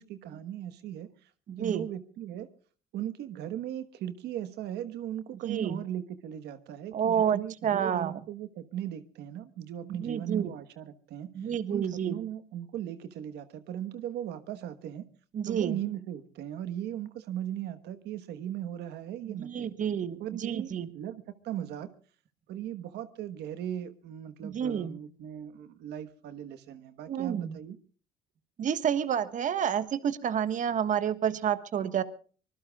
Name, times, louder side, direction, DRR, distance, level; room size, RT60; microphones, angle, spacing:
voice 1, 0.0-1.3 1.6-2.5 2.9-11.3 11.7-15.1 15.4-19.7 20.2-21.9 22.5-27.8, right 11 dB, 80° right, 1.3 m, -38 dB
voice 2, 1.5-1.8 5.5-5.8 6.9-8.2 9.9-10.5 11.3-12.2 15.3-15.8 19.3-20.9 24.4-25.0 27.1-27.5 28.6-32.0, right 8 dB, 50° right, 1.4 m, -29 dB
25.0 x 20.5 x 2.4 m
cardioid pair, 110°, 17 cm